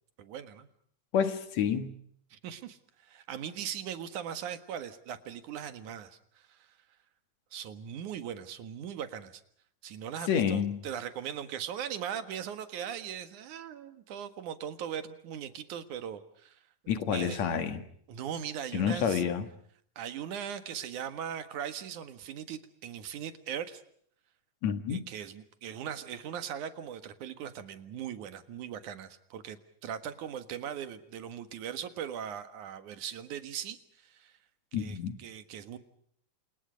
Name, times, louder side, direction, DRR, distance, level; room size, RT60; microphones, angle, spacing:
voice 1, 0.2-0.7 2.3-6.7 7.5-9.4 9.8-16.6 17.1-17.4 18.1-19.2 20.0-23.8 24.9-34.4 34.7-35.8, right 9 dB, 85° right, 3.1 m, -39 dB
voice 2, 1.1-1.9 10.3-10.8 16.9-17.8 18.7-19.5 24.6-25.0 34.7-35.2, left 7 dB, 70° left, 2.9 m, -29 dB
30.0 x 27.0 x 5.2 m
omnidirectional pair, 3.4 m